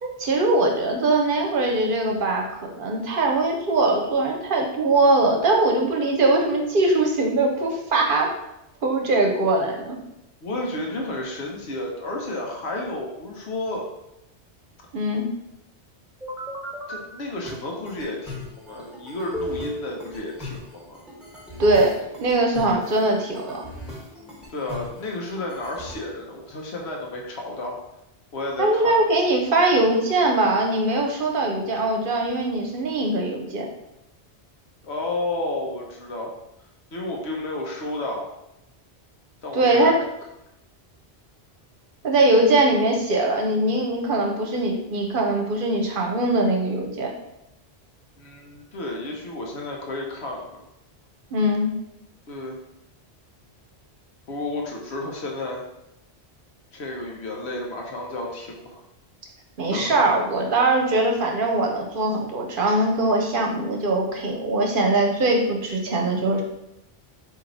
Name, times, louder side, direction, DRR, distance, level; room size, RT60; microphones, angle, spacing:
voice 1, 0.0-2.5 2.7-8.3 8.8-10.0 14.9-15.3 21.6-23.6 28.6-33.7 39.5-40.0 42.0-47.1 51.3-51.7 59.6-66.4, right 2 dB, 55° right, 1 dB, 0.8 m, -21 dB
voice 2, 10.4-13.9 16.9-18.4 18.7-21.0 24.5-27.8 28.3-29.0 34.8-36.3 36.9-38.3 39.4-39.9 48.2-50.6 52.3-52.6 54.3-55.6 56.7-58.8 59.7-60.2, left 2 dB, 75° left, -1 dB, 1.2 m, -31 dB
sound 1, 16.2-17.0 17.5-25.9, left 1 dB, ahead, 1.2 m, -37 dB
4.4 x 2.9 x 3.9 m, 0.87 s
omnidirectional pair, 1.1 m